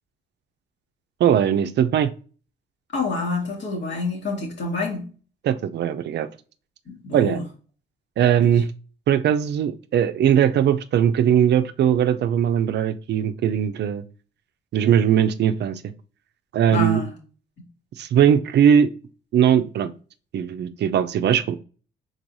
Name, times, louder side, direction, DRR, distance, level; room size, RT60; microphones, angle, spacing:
voice 1, 1.2-2.1 5.4-6.3 7.1-7.4 8.2-8.7 9.1-14.0 14.7-15.8 16.5-17.0 18.0-18.9 19.3-19.9 20.3-21.6, right 9 dB, 60° right, 0.4 m, -19 dB
voice 2, 2.9-5.1 6.9-7.4 16.7-17.1, left 3 dB, 65° left, 1.8 m, -27 dB
4.6 x 3.9 x 2.6 m
cardioid pair, 90°, 20 cm